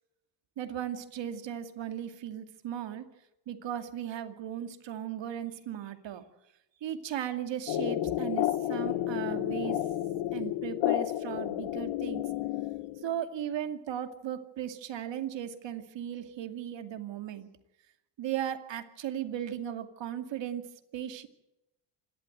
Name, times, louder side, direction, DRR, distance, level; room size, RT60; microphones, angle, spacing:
voice 1, 0.6-3.1 3.5-6.3 6.8-9.8 10.3-12.3 13.0-17.5 18.2-21.3, right 10 dB, 65° right, 7 dB, 2.5 m, -37 dB
sound 1, 7.7-13.2, left 13 dB, 75° left, 1.4 m, -31 dB
27.0 x 12.5 x 8.0 m, 0.91 s
cardioid pair, 100°, 47 cm